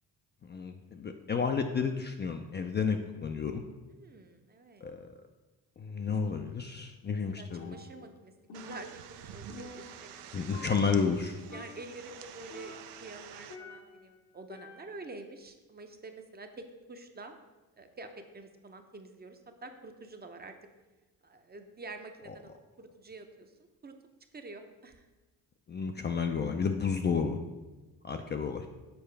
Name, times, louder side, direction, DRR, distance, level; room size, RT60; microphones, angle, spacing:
voice 1, 0.5-3.6 4.8-5.1 5.8-7.8 10.3-11.4 25.7-27.4 28.0-28.7, left 5 dB, 25° left, 5 dB, 0.4 m, -31 dB
voice 2, 3.9-4.9 7.3-10.4 11.5-17.4 17.8-20.5 21.2-23.5 23.8-24.0 24.3-25.1 28.1-28.4, right 2 dB, 25° right, 6 dB, 0.6 m, -48 dB
Percussion, 7.5-8.2 8.5-10.2 10.5-11.2 11.5-12.0 12.5-14.1 14.5-15.2, left 3 dB, 75° left, 1.2 m, -49 dB
sound 1, 8.5-13.6, right 9 dB, 75° right, 0.5 m, -48 dB
6.9 x 4.3 x 3.3 m, 1.2 s
supercardioid pair, 65°, 41 cm